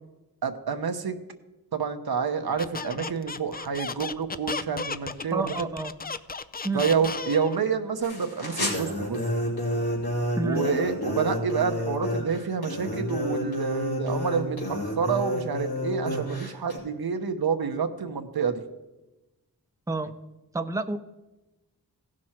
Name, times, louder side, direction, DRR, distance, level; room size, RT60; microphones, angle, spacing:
voice 1, 0.4-1.2 1.7-5.7 6.7-9.2 10.4-18.6, right 6 dB, 65° right, 6 dB, 1.0 m, -28 dB
Squeak, 2.6-7.6, left 4 dB, 25° left, 0.4 m, -34 dB
voice 2, 5.3-5.9 6.6-6.8 10.4-10.6 19.9-20.1 20.5-21.0, right 2 dB, 10° right, 7 dB, 0.7 m, -29 dB
sound 1, 8.0-16.8, left 1 dB, 70° left, 3.4 m, -30 dB
16.0 x 6.2 x 4.4 m, 1.0 s
cardioid pair, 45°, 39 cm